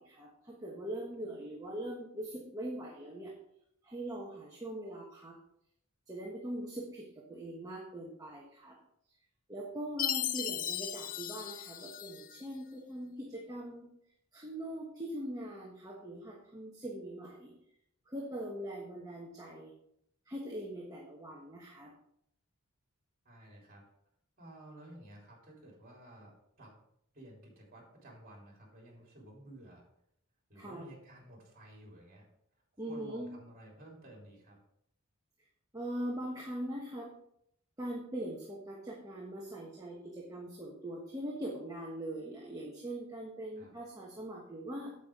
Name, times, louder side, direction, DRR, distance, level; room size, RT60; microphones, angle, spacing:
voice 1, 0.0-3.3 3.8-5.4 6.1-8.8 9.5-13.9 14.3-17.5 18.1-19.7 20.3-21.9 30.6-30.9 32.8-33.3 35.7-37.1 37.8-44.9, right 1 dB, 15° right, -3 dB, 1.2 m, -41 dB
Chime, 10.0-12.4, left 11 dB, 40° left, 0.4 m, -36 dB
voice 2, 23.3-23.8 24.4-26.7 27.1-29.8 30.5-32.3 32.9-34.6 43.6-43.7, right 1 dB, 40° right, -1 dB, 3.4 m, -53 dB
8.5 x 8.2 x 3.7 m, 0.72 s
head